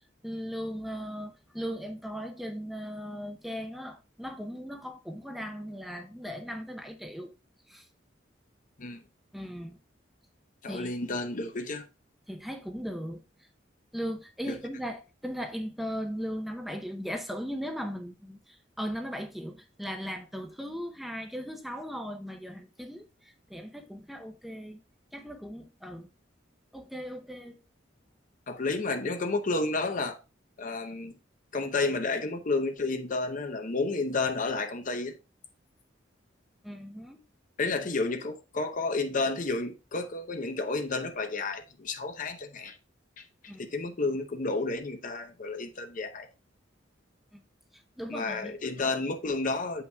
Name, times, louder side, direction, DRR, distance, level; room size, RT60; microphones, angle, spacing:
voice 1, 0.2-7.3 7.7-7.9 9.3-9.8 10.7-10.9 12.3-13.5 13.9-24.8 25.1-26.1 26.7-27.6 36.6-37.2 43.5-43.6 47.3-47.4 48.0-48.6, equal, ahead, 0.6 m, -38 dB
voice 2, 10.6-11.9 14.5-14.6 28.5-30.2 30.6-31.1 31.5-35.1 37.6-42.8 43.2-43.3 43.6-46.3 48.1-49.8, left 3 dB, 45° left, 0.7 m, -31 dB
8.0 x 5.6 x 2.2 m
head